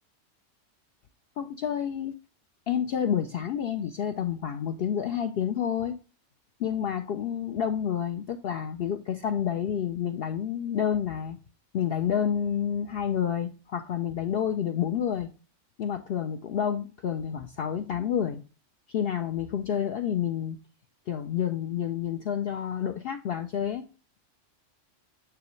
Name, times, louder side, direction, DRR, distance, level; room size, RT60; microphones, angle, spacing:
voice 1, 1.4-2.1 2.7-6.0 6.6-11.4 11.7-15.3 15.8-18.4 18.9-20.6 21.1-23.9, left 9 dB, 60° left, 5 dB, 0.6 m, -29 dB
7.0 x 4.8 x 3.1 m, 0.33 s
omnidirectional pair, 1.3 m